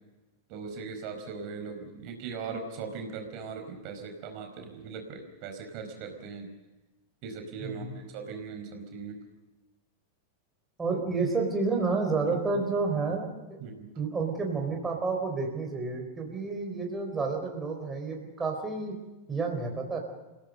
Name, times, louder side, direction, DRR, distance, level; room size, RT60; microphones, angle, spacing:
voice 1, 0.5-6.5 7.2-9.2 10.9-11.0 12.3-12.4 13.6-13.9, right 5 dB, 40° right, 4 dB, 4.9 m, -39 dB
voice 2, 7.6-8.0 10.8-13.3 14.0-18.9 19.3-20.0, right 4 dB, 15° right, 1 dB, 4.4 m, -30 dB
29.5 x 17.0 x 6.7 m, 1.1 s
figure-of-eight pair, 90°, 0 cm